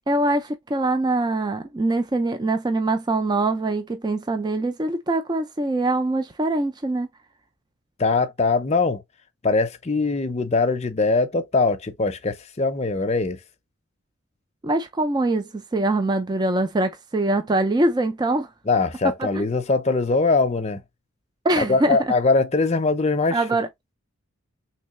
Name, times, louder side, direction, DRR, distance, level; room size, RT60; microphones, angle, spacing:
voice 1, 0.1-7.1 14.6-18.5 19.2-19.4 21.4-22.1 23.3-23.7, right 2 dB, 20° right, 0.3 m, -23 dB
voice 2, 8.0-9.0 9.4-13.4 18.7-20.8 21.6-23.4, left 3 dB, 30° left, 0.6 m, -22 dB
3.7 x 3.1 x 3.0 m
head